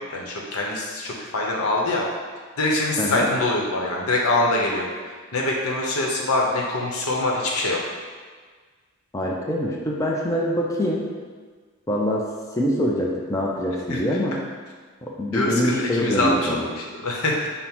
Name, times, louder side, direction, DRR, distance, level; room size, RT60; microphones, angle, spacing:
voice 1, 0.1-2.1 2.6-7.8 13.9-14.0 15.3-17.5, left 2 dB, 85° left, -2 dB, 0.8 m, -24 dB
voice 2, 3.0-3.3 9.1-11.0 11.9-12.3 12.6-14.4 15.0-16.6, equal, 15° left, -3 dB, 0.4 m, -24 dB
5.4 x 2.1 x 4.4 m, 1.5 s
head